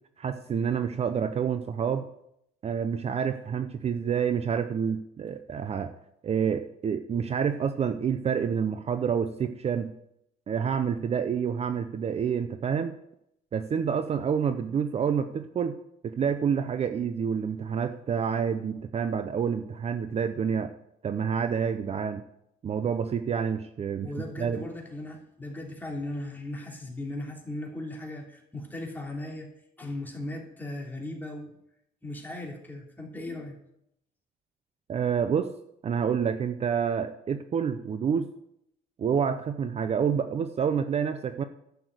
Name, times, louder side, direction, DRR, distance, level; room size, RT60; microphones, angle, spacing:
voice 1, 0.2-2.1 2.6-5.9 6.2-9.9 10.5-13.0 13.5-15.8 16.0-20.7 21.0-22.2 22.6-24.1 24.4-24.6 34.9-35.5 35.8-38.3 39.0-41.4, right 7 dB, 40° right, 9 dB, 0.7 m, -28 dB
voice 2, 24.0-29.5 29.8-31.6 32.0-33.6, left 1 dB, 10° left, -1 dB, 3.3 m, -37 dB
12.5 x 7.0 x 7.9 m, 0.77 s
cardioid pair, 110°, 17 cm